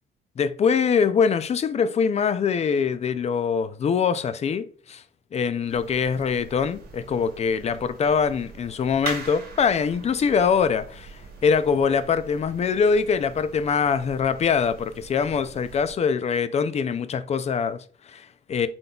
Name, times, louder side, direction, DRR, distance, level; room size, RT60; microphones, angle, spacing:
voice 1, 0.4-5.0 5.3-18.7, left 6 dB, 35° left, 0.4 m, -23 dB
sound 1, 5.7-16.0, right 4 dB, 50° right, 1.1 m, -42 dB
3.8 x 3.7 x 2.3 m
cardioid pair, 90°, 20 cm